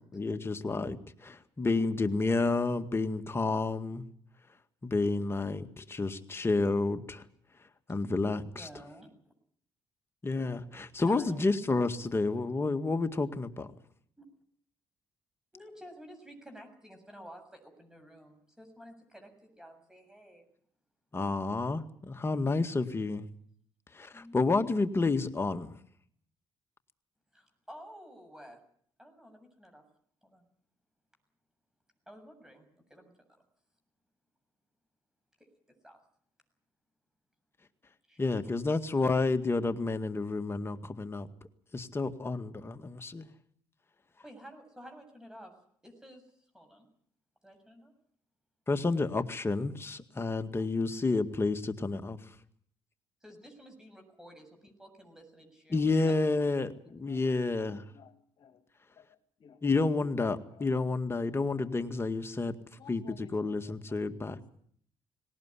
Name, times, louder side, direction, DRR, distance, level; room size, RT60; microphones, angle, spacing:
voice 1, 0.2-1.0 1.2-4.0 4.8-7.2 7.9-8.7 10.2-13.7 21.1-23.2 23.9-25.7 38.2-41.3 41.7-43.3 48.7-52.2 55.7-57.8 59.6-62.6 62.9-64.4, left 3 dB, 25° left, 8 dB, 2.0 m, -30 dB
voice 2, 8.6-9.1 10.9-11.4 14.2-14.3 15.5-20.5 22.9-23.0 24.1-24.8 27.3-28.6 29.0-29.8 30.2-30.5 32.1-33.3 35.8-36.0 38.1-38.2 44.2-45.5 45.8-46.9 47.4-47.9 53.2-56.4, equal, 5° right, 5 dB, 7.2 m, -52 dB
voice 3, 57.6-58.6 59.0-59.1 59.4-59.6 60.2-60.7 62.8-64.5, left 7 dB, 60° left, 7 dB, 2.1 m, -57 dB
18.5 x 18.5 x 9.9 m, 0.62 s
cardioid pair, 75°, 9 cm